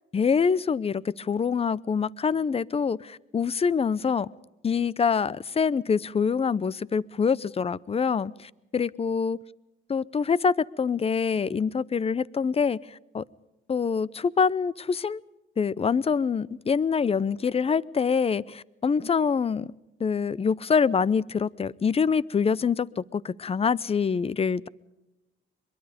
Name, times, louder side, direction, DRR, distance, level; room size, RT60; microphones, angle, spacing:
voice 1, 0.1-4.3 4.6-9.4 9.9-13.2 13.7-15.2 15.6-19.7 20.0-24.7, left 6 dB, 30° left, 22 dB, 0.7 m, -25 dB
23.0 x 22.5 x 5.1 m, 0.98 s
cardioid pair, 90°, 20 cm